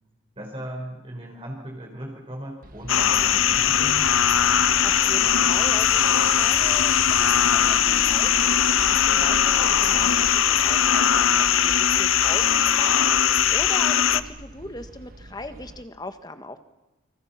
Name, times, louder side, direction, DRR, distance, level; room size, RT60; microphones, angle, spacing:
voice 1, 0.4-4.1, equal, 30° right, -1 dB, 4.6 m, -37 dB
sound 1, 2.6-15.9, right 1 dB, 45° right, 1.5 m, -43 dB
sound 2, 2.9-14.2, left 9 dB, 85° left, 0.9 m, -20 dB
sound 3, 3.0-12.6, left 3 dB, 65° left, 2.0 m, -36 dB
voice 2, 4.8-16.6, left 2 dB, 20° left, 8 dB, 1.5 m, -39 dB
29.0 x 26.5 x 5.8 m, 1.0 s
head